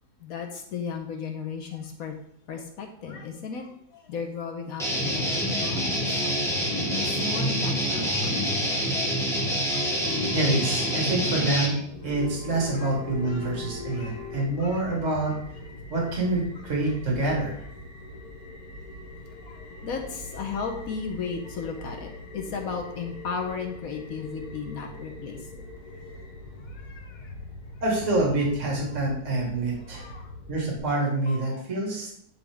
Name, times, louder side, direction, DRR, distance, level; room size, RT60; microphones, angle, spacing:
voice 1, 0.2-2.1 2.5-6.4 7.0-8.7 9.7-9.9 12.5-12.9 13.2-13.5 13.9-14.2 14.6-14.8 19.3-25.6 26.0-26.1 26.7-27.3 29.8-30.3 31.3-31.6, left 5 dB, 70° left, 3 dB, 1.2 m, -36 dB
Guitar, 4.8-11.7, equal, ahead, 1.0 m, -26 dB
sound 1, 9.1-14.4, left 4 dB, 15° right, 2.4 m, -40 dB
voice 2, 10.3-11.8 12.0-15.4 15.9-17.6 27.8-30.1 30.5-32.1, right 2 dB, 50° right, -2 dB, 2.0 m, -26 dB
sound 2, 11.8-30.8, left 1 dB, 30° left, 0.9 m, -42 dB
9.1 x 3.8 x 3.4 m, 0.68 s
omnidirectional pair, 1.7 m